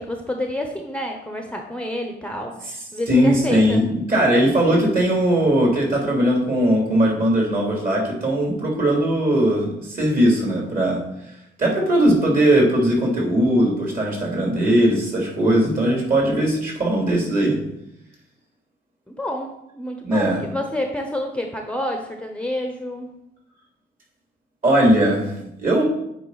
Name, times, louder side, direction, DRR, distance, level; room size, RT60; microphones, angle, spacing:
voice 1, 0.0-3.8 19.1-23.1, left 1 dB, 5° left, 3 dB, 0.8 m, -29 dB
voice 2, 3.1-11.3 11.6-17.6 20.0-20.5 24.6-25.8, right 1 dB, 45° right, -1 dB, 2.9 m, -19 dB
9.0 x 4.0 x 4.0 m, 0.82 s
cardioid pair, 90°, 20 cm